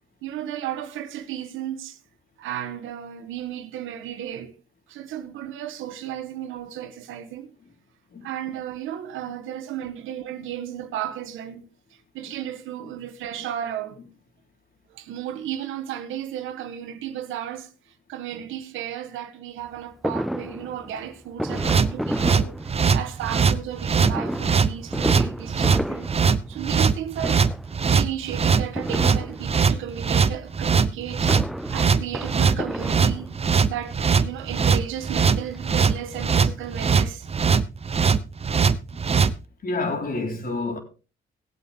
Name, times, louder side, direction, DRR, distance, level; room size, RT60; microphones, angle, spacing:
voice 1, 0.2-2.0 2.4-4.5 4.9-7.5 8.2-11.6 12.1-14.0 14.9-17.7 18.1-26.1 26.5-27.5 27.9-31.3 31.7-33.3 33.7-37.3, right 10 dB, 90° right, 1.4 m, -34 dB
Fireworks, 20.0-23.2 24.0-26.9 27.2-27.8 28.8-29.8 31.0-33.6 34.4-34.5 34.8-34.9 35.2-36.5 36.8-36.9 37.1-37.2, equal, ahead, 0.5 m, -32 dB
sound 1, 21.5-39.3, right 5 dB, 30° right, 0.8 m, -21 dB
voice 2, 39.6-40.8, left 3 dB, 45° left, 4.0 m, -29 dB
18.0 x 8.1 x 3.7 m
cardioid pair, 90°, 20 cm